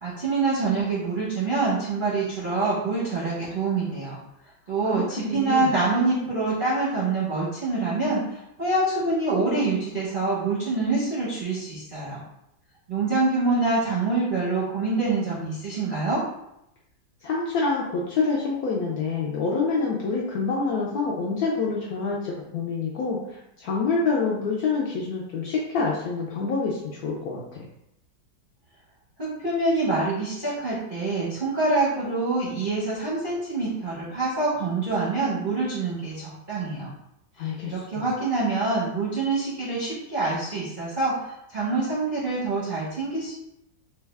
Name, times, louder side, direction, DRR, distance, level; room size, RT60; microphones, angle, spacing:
voice 1, 0.0-4.2 4.7-12.2 12.9-16.2 29.2-36.9 37.4-43.3, right 3 dB, 45° right, -9 dB, 0.6 m, -26 dB
voice 2, 4.9-5.7 17.2-27.7 37.4-38.1, left 4 dB, 75° left, -4 dB, 0.9 m, -27 dB
3.3 x 2.3 x 3.2 m, 0.82 s
omnidirectional pair, 2.0 m